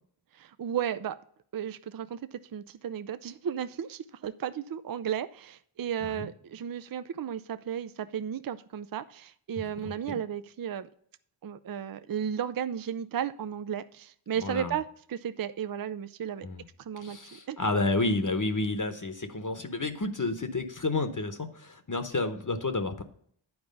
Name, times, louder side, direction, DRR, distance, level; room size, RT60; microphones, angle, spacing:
voice 1, 0.3-1.2 1.5-10.9 11.4-16.5 16.8-17.2 17.5-17.6, right 9 dB, 45° right, 12 dB, 0.5 m, -34 dB
voice 2, 9.8-10.2 14.4-14.8 16.4-16.7 17.0-23.0, left 2 dB, 40° left, 7 dB, 0.9 m, -30 dB
9.5 x 4.6 x 5.2 m, 0.62 s
wide cardioid pair, 40°, 49 cm